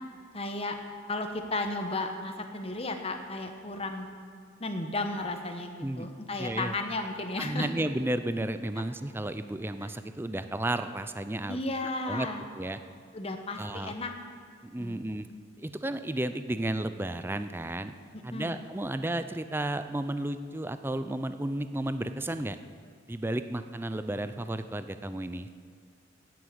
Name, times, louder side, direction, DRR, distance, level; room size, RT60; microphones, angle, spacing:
voice 1, 0.3-0.8 1.1-4.1 4.6-7.7 9.8-9.9 11.5-12.4 13.1-14.1 14.8-15.0 18.1-18.6, left 2 dB, 30° left, 5 dB, 1.1 m, -34 dB
voice 2, 6.4-6.7 7.4-11.6 12.1-12.3 12.6-12.8 13.6-13.9 14.7-15.3 15.6-17.9 18.2-22.6 23.1-25.5, right 1 dB, 10° right, 10 dB, 0.4 m, -33 dB
10.0 x 9.4 x 8.8 m, 2.1 s
head